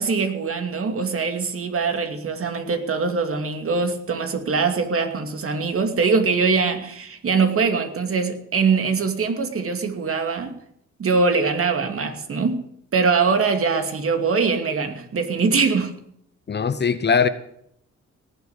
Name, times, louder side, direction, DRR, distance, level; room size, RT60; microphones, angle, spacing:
voice 1, 0.0-10.6 11.0-12.6 12.9-15.9, right 4 dB, 45° right, 7 dB, 2.6 m, -22 dB
voice 2, 16.5-17.3, left 6 dB, 35° left, 13 dB, 1.1 m, -20 dB
18.0 x 8.1 x 8.2 m, 0.71 s
cardioid pair, 90°, 30 cm